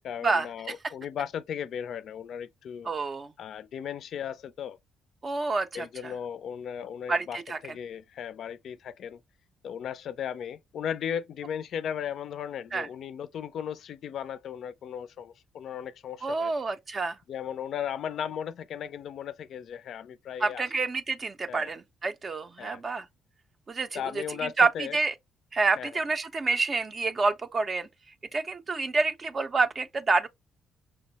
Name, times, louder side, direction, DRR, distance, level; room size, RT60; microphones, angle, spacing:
voice 1, 0.0-2.9 3.4-4.8 5.7-9.2 9.6-16.5 17.3-20.6 21.5-21.7 22.6-22.8 23.9-25.0 25.8-26.0, left 8 dB, 65° left, 0.3 m, -36 dB
voice 2, 2.9-3.3 5.2-6.1 7.1-7.6 12.7-12.9 16.2-17.2 20.4-23.0 23.7-24.0 24.6-25.1 25.5-27.9 28.3-30.3, right 3 dB, 35° right, 0.4 m, -28 dB
5.9 x 2.0 x 2.8 m
cardioid pair, 90°, 0 cm